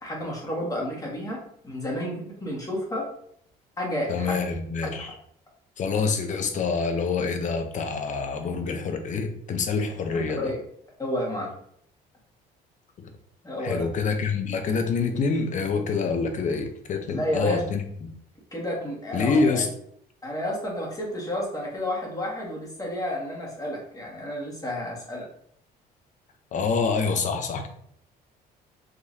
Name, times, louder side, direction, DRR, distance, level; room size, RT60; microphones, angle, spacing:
voice 1, 0.0-3.1 3.8-4.3 10.4-10.6 11.0-11.5 13.4-13.9 17.1-17.6 18.5-19.6 20.2-25.2, left 1 dB, 20° left, -2 dB, 1.7 m, -31 dB
voice 2, 4.1-5.1 5.8-10.5 13.0-13.1 13.6-17.8 19.1-19.7 26.5-27.7, left 4 dB, 45° left, 6 dB, 0.8 m, -26 dB
5.2 x 3.1 x 2.7 m, 0.67 s
cardioid pair, 110°, 17 cm